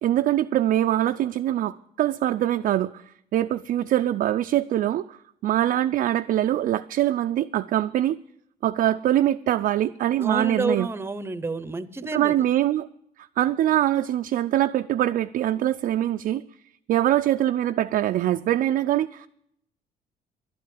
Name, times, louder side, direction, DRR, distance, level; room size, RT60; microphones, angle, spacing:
voice 1, 0.0-3.0 3.3-8.2 8.6-10.9 12.1-12.9 13.4-16.4 16.9-19.3, right 12 dB, 55° right, 7 dB, 0.4 m, -23 dB
voice 2, 10.2-12.3, right 3 dB, 15° right, 15 dB, 0.7 m, -29 dB
11.5 x 9.4 x 9.3 m, 0.75 s
cardioid pair, 110°, 17 cm